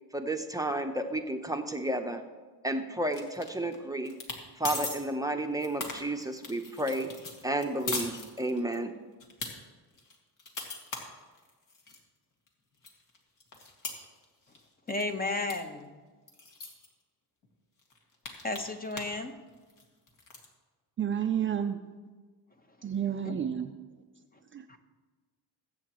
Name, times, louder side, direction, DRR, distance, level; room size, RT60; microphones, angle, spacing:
voice 1, 0.1-2.2 2.6-4.1 4.6-7.1 7.4-8.9, right 1 dB, 10° right, 0.8 m, -32 dB
sound 1, 3.1-3.8 4.1-4.4 4.6-5.0 5.4-8.8 9.2-9.5 10.0-12.0 12.5-12.6 12.8-14.6 14.9-15.1 15.5-15.6 15.8-15.9 16.3-16.9 17.4-17.5 17.8-19.2 19.5-20.5, left 3 dB, 50° left, 2.2 m, -39 dB
voice 2, 14.9-15.9 18.4-19.3 23.2-23.4 24.7-24.8, left 2 dB, 20° left, 1.1 m, -33 dB
voice 3, 21.0-21.8 22.8-23.7 24.5-24.8, right 9 dB, 30° right, 0.5 m, -30 dB
21.0 x 8.5 x 3.1 m
cardioid pair, 115°, 39 cm